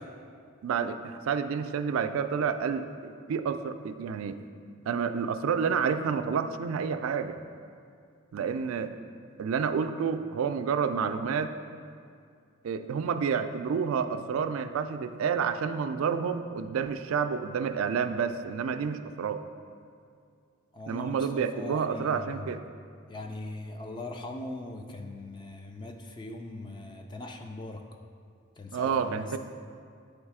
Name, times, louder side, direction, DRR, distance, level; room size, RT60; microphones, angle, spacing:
voice 1, 0.6-2.9 3.3-4.4 4.9-7.4 8.3-8.9 9.4-11.5 12.6-19.4 20.9-22.6 28.7-29.4, right 6 dB, 85° right, 9 dB, 0.3 m, -29 dB
voice 2, 20.7-22.5 23.1-27.8 28.6-29.4, left 2 dB, 20° left, 4 dB, 0.3 m, -40 dB
8.1 x 3.2 x 4.8 m, 2.2 s
head